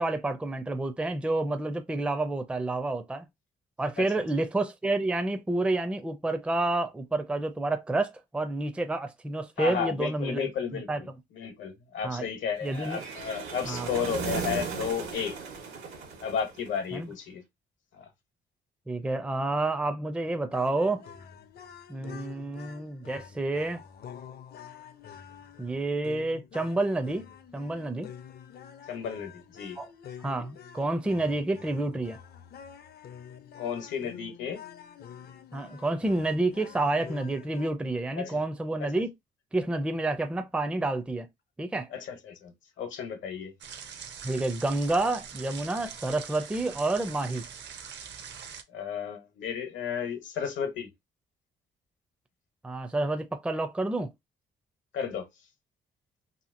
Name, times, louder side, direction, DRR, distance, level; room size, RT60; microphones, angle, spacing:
voice 1, 0.0-3.3 3.8-10.5 10.9-11.0 12.0-12.3 12.6-13.0 13.7-13.9 16.9-17.1 18.9-21.1 21.9-23.8 25.6-27.3 27.5-28.1 29.8-29.9 30.2-32.2 35.5-39.1 39.5-41.3 41.6-41.9 44.2-47.4 52.6-54.1, right 2 dB, 5° right, 0.4 m, -29 dB
voice 2, 9.6-11.1 11.3-15.4 16.2-17.4 18.0-18.1 28.9-29.8 33.6-34.6 38.2-38.4 38.8-39.0 41.9-43.5 48.7-50.9 54.9-55.3, left 7 dB, 75° left, 0.9 m, -33 dB
sound 1, 12.6-16.9, right 5 dB, 85° right, 1.2 m, -36 dB
sound 2, 20.5-37.7, left 8 dB, 55° left, 0.5 m, -47 dB
sound 3, 43.6-48.6, right 7 dB, 60° right, 0.6 m, -43 dB
2.8 x 2.7 x 2.5 m
cardioid pair, 90°, 20 cm